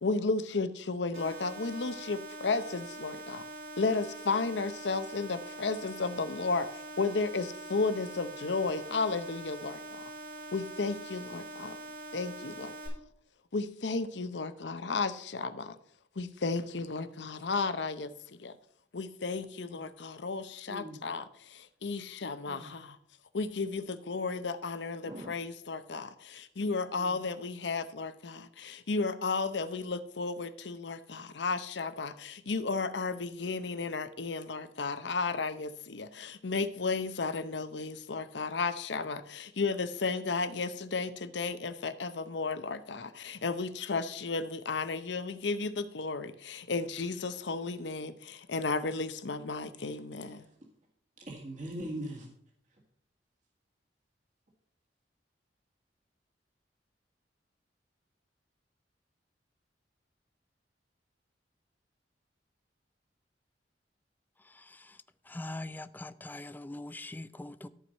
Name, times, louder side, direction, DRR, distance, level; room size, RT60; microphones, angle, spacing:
voice 1, 0.0-3.4 3.8-10.0 10.5-11.8 12.1-12.7 13.5-15.8 16.2-18.1 18.4-18.5 18.9-23.0 23.3-50.4, left 4 dB, 75° left, 0.8 m, -33 dB
sound 1, 1.1-12.9, right 2 dB, 70° right, 5.0 m, -44 dB
voice 2, 20.7-21.0 22.5-22.7 25.0-25.3 27.0-27.2 51.3-52.3, right 1 dB, 45° right, 1.9 m, -41 dB
voice 3, 65.3-67.7, left 2 dB, 10° left, 0.4 m, -41 dB
14.0 x 4.7 x 5.4 m
head